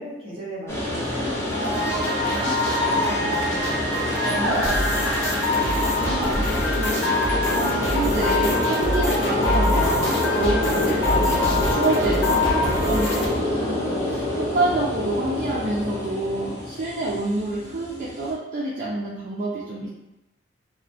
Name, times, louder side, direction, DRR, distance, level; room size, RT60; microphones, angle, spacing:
voice 1, 0.0-4.9, equal, 30° right, -7 dB, 0.9 m, -35 dB
sound 1, 0.7-18.3, left 1 dB, 15° left, 0.6 m, -27 dB
sound 2, 1.5-13.3, left 1 dB, 65° left, 0.5 m, -24 dB
voice 2, 6.0-19.9, right 2 dB, 45° right, -6 dB, 0.4 m, -28 dB
2.4 x 2.0 x 2.6 m, 0.98 s
head